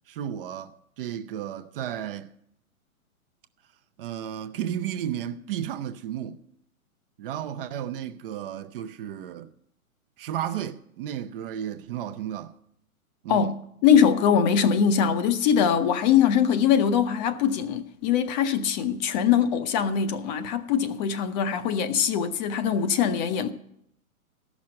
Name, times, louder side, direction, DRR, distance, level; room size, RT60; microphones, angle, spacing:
voice 1, 0.1-2.3 4.0-6.4 7.2-9.5 10.2-12.5 13.2-13.5, right 10 dB, 40° right, 0.6 m, -33 dB
voice 2, 13.8-23.5, left 8 dB, 30° left, 0.6 m, -22 dB
14.0 x 6.1 x 7.5 m
hypercardioid pair, 120°, 43 cm